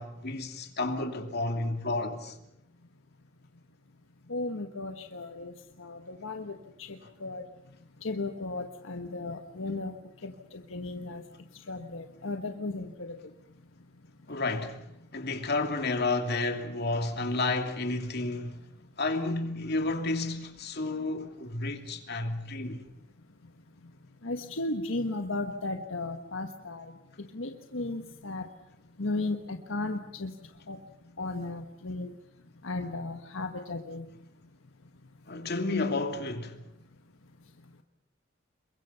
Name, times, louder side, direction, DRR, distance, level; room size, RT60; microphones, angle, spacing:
voice 1, 0.0-2.4 14.3-14.8 15.1-18.6 19.0-22.8 35.3-36.6, left 2 dB, 55° left, 2.8 m, -31 dB
voice 2, 4.3-5.5 5.8-7.4 8.0-9.9 10.2-11.2 11.7-13.2 24.2-26.9 27.3-28.5 29.0-30.3 30.7-30.8 31.2-32.1 32.6-34.0, left 2 dB, 85° left, 1.4 m, -35 dB
28.0 x 23.0 x 5.8 m
head